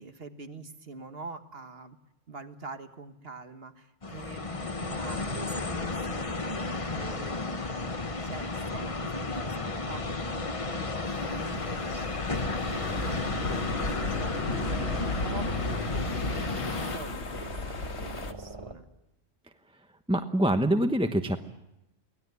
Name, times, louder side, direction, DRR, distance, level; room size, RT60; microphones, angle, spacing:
voice 1, 0.0-2.0 2.3-7.4 8.2-18.9, right 4 dB, 55° right, 8 dB, 1.8 m, -45 dB
sound 1, 4.0-17.0, left 3 dB, 30° left, 1.2 m, -33 dB
sound 2, 4.2-18.8, right 2 dB, 25° right, 1.7 m, -48 dB
sound 3, 11.1-18.3, left 3 dB, 70° left, 1.9 m, -35 dB
voice 2, 20.1-21.4, right 1 dB, 5° right, 7 dB, 1.0 m, -25 dB
24.0 x 18.0 x 9.5 m, 0.89 s
omnidirectional pair, 1.2 m